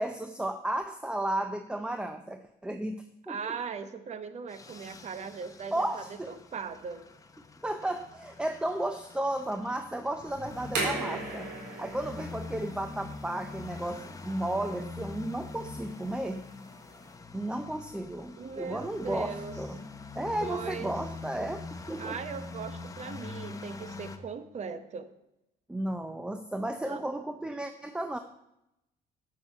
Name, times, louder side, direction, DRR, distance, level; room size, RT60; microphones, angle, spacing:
voice 1, 0.0-3.5 5.7-6.3 7.6-11.5 11.8-16.5 17.3-19.8 20.2-22.2 25.7-28.2, right 1 dB, 5° right, 8 dB, 0.5 m, -34 dB
voice 2, 3.3-7.1 18.4-19.5 20.4-20.9 22.0-25.1 26.9-27.1, right 6 dB, 40° right, 11 dB, 1.0 m, -39 dB
sound 1, 4.5-24.2, left 3 dB, 20° left, 0.9 m, -44 dB
sound 2, 10.5-17.1, right 2 dB, 85° right, 3.8 m, -39 dB
8.7 x 7.9 x 5.4 m, 0.86 s
cardioid pair, 110°, 17 cm